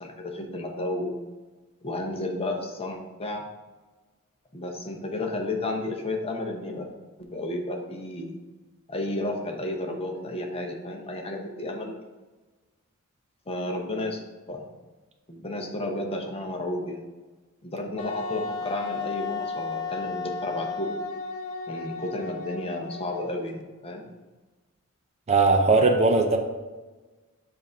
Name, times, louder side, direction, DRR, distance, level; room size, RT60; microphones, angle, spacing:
voice 1, 0.0-1.2 1.8-3.4 4.5-6.9 7.2-8.4 8.9-11.9 13.5-14.2 14.5-14.7 15.3-17.0 17.6-21.0 21.7-24.1, left 2 dB, 25° left, 2 dB, 0.7 m, -32 dB
Wind instrument woodwind instrument, 18.0-23.5, left 4 dB, 75° left, 0.4 m, -34 dB
voice 2, 25.3-26.4, right 3 dB, 30° right, 4 dB, 0.5 m, -19 dB
7.3 x 2.6 x 5.4 m, 1.2 s
head